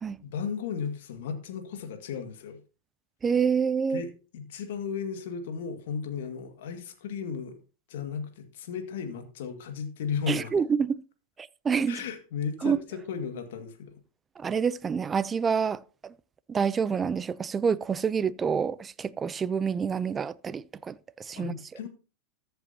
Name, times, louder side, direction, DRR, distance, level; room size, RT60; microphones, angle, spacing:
voice 1, 0.2-2.6 3.9-4.1 4.3-7.6 7.9-10.5 11.9-13.9 21.4-21.9, left 6 dB, 70° left, 1.9 m, -35 dB
voice 2, 3.2-4.0 10.3-11.0 11.4-12.0 12.6-12.8 14.4-16.1 16.5-21.5, right 6 dB, 20° right, 0.5 m, -27 dB
14.0 x 7.9 x 2.8 m
hypercardioid pair, 105°, 0 cm